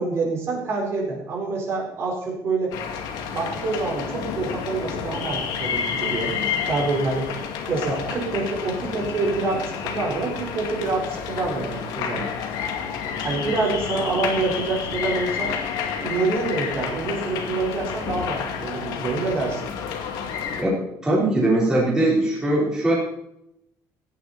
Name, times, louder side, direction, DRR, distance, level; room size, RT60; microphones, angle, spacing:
voice 1, 0.0-2.7 3.3-7.3 7.7-12.3 13.2-15.5 16.0-19.7, right 3 dB, 40° right, -1 dB, 4.6 m, -26 dB
sound 1, 2.7-20.6, left 7 dB, 75° left, 2.4 m, -30 dB
voice 2, 20.6-23.0, right 1 dB, 10° right, -5 dB, 4.2 m, -21 dB
16.5 x 10.5 x 4.3 m, 0.78 s
cardioid pair, 175°, 7 cm